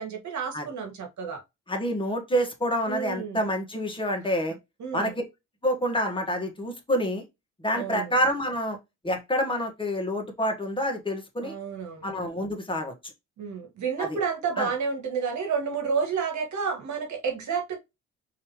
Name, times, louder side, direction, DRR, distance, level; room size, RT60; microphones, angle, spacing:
voice 1, 0.0-1.4 2.9-3.4 4.8-5.1 7.7-8.1 11.4-12.1 13.4-17.8, right 6 dB, 70° right, 1.7 m, -30 dB
voice 2, 1.7-4.6 4.9-5.2 5.6-7.2 7.6-8.8 9.0-11.5 12.0-12.9 14.0-14.2 14.6-14.7, equal, 15° left, 1.5 m, -27 dB
5.5 x 3.0 x 3.1 m
cardioid pair, 90°, 30 cm